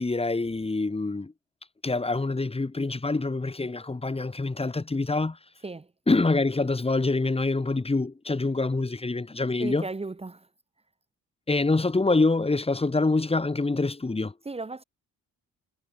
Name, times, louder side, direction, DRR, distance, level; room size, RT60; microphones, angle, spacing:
voice 1, 0.0-1.3 1.8-5.4 6.1-9.9 11.5-14.3, left 3 dB, 20° left, 4.0 m, -25 dB
voice 2, 9.6-10.5 14.4-14.8, right 3 dB, 20° right, 2.7 m, -35 dB
cardioid pair, 90°, 30 cm